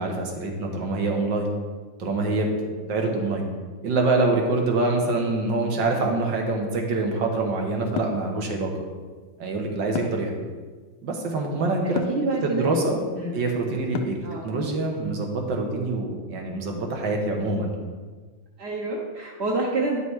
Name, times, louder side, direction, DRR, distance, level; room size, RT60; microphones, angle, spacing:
voice 1, 0.0-1.5 2.0-2.5 2.9-3.5 3.8-8.7 9.4-10.4 11.0-12.0 12.4-13.0 13.3-14.2 14.4-17.8, right 3 dB, 80° right, 2 dB, 2.0 m, -25 dB
sound 1, 8.0-8.2 9.9-10.3 11.9-12.2 13.9-14.3, left 7 dB, 90° left, 1.4 m, -30 dB
voice 2, 10.0-10.3 11.7-12.7 13.1-13.4 14.2-14.5 18.6-20.0, right 2 dB, 45° right, -2 dB, 1.0 m, -28 dB
10.0 x 6.1 x 4.7 m, 1.4 s
omnidirectional pair, 2.0 m